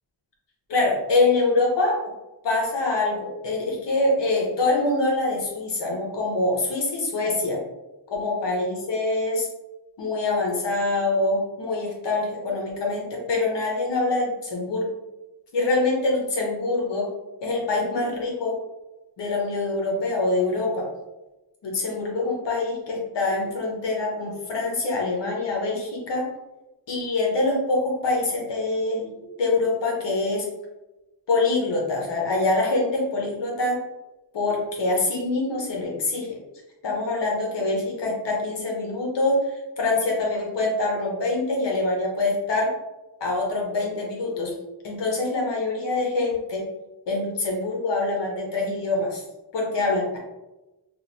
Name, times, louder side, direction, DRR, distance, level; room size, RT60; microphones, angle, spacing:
voice 1, 0.7-2.0 2.4-7.6 8.1-9.5 10.0-14.9 15.5-17.1 17.4-18.6 19.2-20.9 21.6-26.3 26.9-29.1 29.4-30.5 31.3-33.8 34.3-36.4 36.8-42.7 43.2-44.5 44.8-46.6 47.1-49.2 49.5-50.2, left 2 dB, 80° left, -1 dB, 1.0 m, -25 dB
3.1 x 2.6 x 2.7 m, 1.0 s
wide cardioid pair, 135°, 42 cm